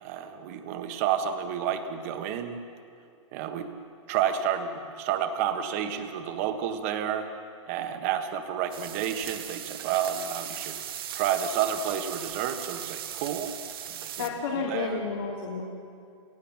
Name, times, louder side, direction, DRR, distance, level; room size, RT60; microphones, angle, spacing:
voice 1, 0.0-2.6 3.3-3.7 4.1-7.3 7.7-10.8 11.1-13.5 13.9-15.0, right 9 dB, 30° right, 7 dB, 1.6 m, -30 dB
sound 1, 8.7-14.3, right 10 dB, 45° right, 1.9 m, -38 dB
voice 2, 14.2-15.6, left 5 dB, 50° left, -3 dB, 3.1 m, -31 dB
29.5 x 17.5 x 7.3 m, 2.4 s
hypercardioid pair, 175°, 16 cm